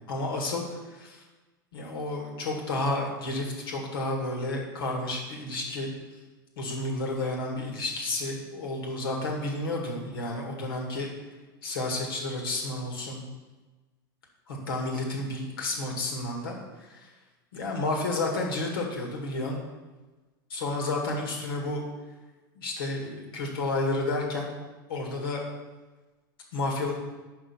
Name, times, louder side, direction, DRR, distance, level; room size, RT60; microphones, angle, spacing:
voice 1, 0.1-0.6 0.9-1.2 1.7-5.9 6.6-11.1 11.6-13.2 14.5-17.1 17.5-19.6 20.5-21.8 22.5-24.5 24.9-25.4 26.5-26.9, left 2 dB, 80° left, 0 dB, 1.7 m, -31 dB
5.3 x 5.0 x 5.5 m, 1.2 s
hypercardioid pair, 105°, 12 cm